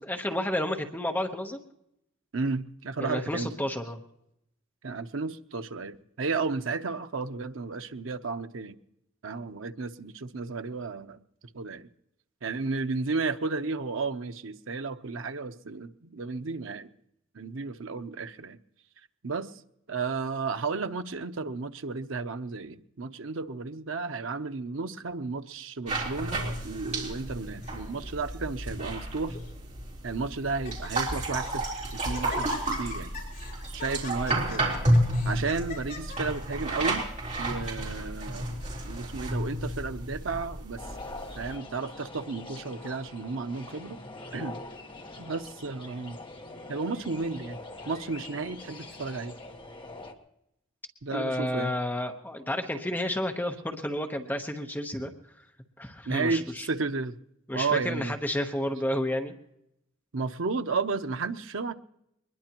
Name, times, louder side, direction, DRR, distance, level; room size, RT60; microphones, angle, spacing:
voice 1, 0.0-1.6 3.0-4.0 51.1-55.1 55.8-56.7 57.5-59.3, left 1 dB, 10° left, 1.0 m, -31 dB
voice 2, 2.3-3.5 4.8-8.8 9.2-11.2 11.5-11.9 12.4-16.9 17.3-18.6 19.2-19.5 19.9-29.4 30.0-33.1 33.7-34.8 35.2-37.0 37.4-40.8 41.3-44.0 44.3-44.6 45.2-46.2 46.7-47.6 47.8-49.3 51.0-51.7 56.1-57.1 57.5-58.2 60.1-61.7, right 4 dB, 85° right, 0.8 m, -33 dB
Laughter, 25.9-26.7 27.4-27.8 28.0-28.1 28.9-29.5 30.1-30.2 30.5-30.9 31.3-31.7 32.1-36.9, left 4 dB, 50° left, 5.7 m, -43 dB
sound 1, 25.9-41.5, right 1 dB, 35° right, 3.8 m, -31 dB
sound 2, 40.8-50.1, left 2 dB, 25° left, 1.3 m, -44 dB
22.0 x 20.5 x 3.0 m
head